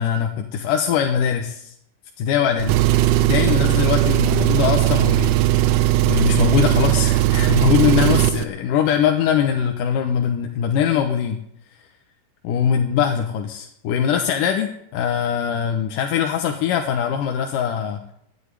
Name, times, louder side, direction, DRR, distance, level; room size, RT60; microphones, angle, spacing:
voice 1, 0.0-1.7 2.2-2.7 3.2-5.7 6.1-11.4 12.4-18.0, left 8 dB, 70° left, 2 dB, 2.4 m, -22 dB
Engine, 2.6-8.4, right 15 dB, 80° right, 1.9 m, -18 dB
11.5 x 10.0 x 9.9 m, 0.73 s
omnidirectional pair, 4.2 m